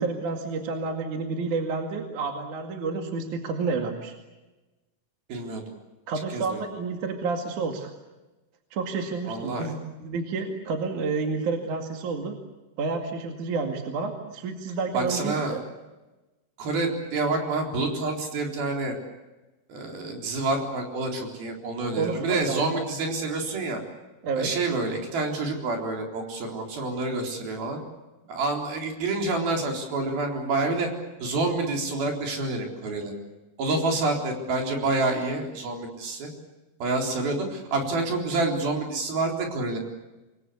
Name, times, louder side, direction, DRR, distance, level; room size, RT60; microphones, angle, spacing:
voice 1, 0.0-4.1 6.1-7.9 8.7-12.3 12.8-15.6 22.0-22.8 24.2-24.5, right 4 dB, 55° right, 4 dB, 3.4 m, -30 dB
voice 2, 5.3-5.6 6.3-6.6 9.3-9.8 14.9-15.6 16.6-18.9 19.7-23.8 24.4-27.8 28.3-30.9 31.2-33.1 33.6-36.3 36.8-39.8, right 3 dB, 70° right, 2 dB, 5.8 m, -28 dB
27.0 x 22.0 x 8.4 m, 1.1 s
omnidirectional pair, 4.4 m